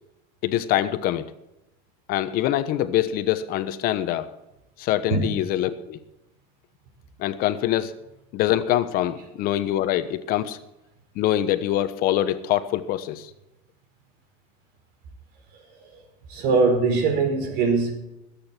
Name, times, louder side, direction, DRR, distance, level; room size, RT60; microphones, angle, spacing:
voice 1, 0.4-1.3 2.1-4.3 4.8-6.0 7.2-7.9 8.3-10.6 11.1-13.3, left 12 dB, 55° left, 11 dB, 1.1 m, -24 dB
voice 2, 15.5-16.0 16.3-17.9, right 4 dB, 65° right, 5 dB, 4.9 m, -22 dB
22.5 x 8.8 x 4.5 m, 0.90 s
cardioid pair, 135°, 18 cm